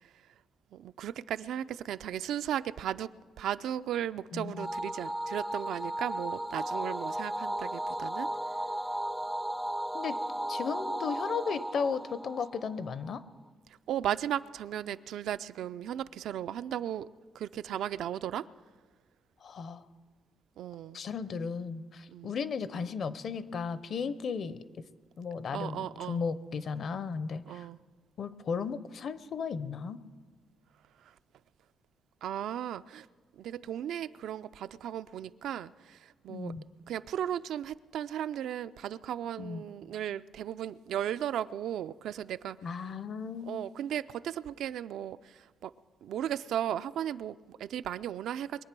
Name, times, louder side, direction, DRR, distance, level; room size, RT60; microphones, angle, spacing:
voice 1, 0.7-3.1 3.4-8.3 13.9-17.1 17.3-18.5 20.6-21.0 22.1-22.3 25.5-26.2 27.5-27.8 32.2-33.1 33.4-36.5 36.9-42.6 43.5-45.7 46.0-48.6, right 10 dB, 75° right, 13 dB, 0.4 m, -36 dB
voice 2, 4.3-4.7 9.9-10.2 10.5-13.2 19.4-19.8 20.9-24.6 25.2-27.7 28.2-30.0 36.3-36.6 39.4-39.6 42.6-43.6, left 5 dB, 50° left, 14 dB, 0.7 m, -35 dB
sound 1, 4.6-13.2, right 1 dB, ahead, 0.4 m, -35 dB
23.0 x 8.8 x 6.0 m, 1.4 s
cardioid pair, 145°, 0 cm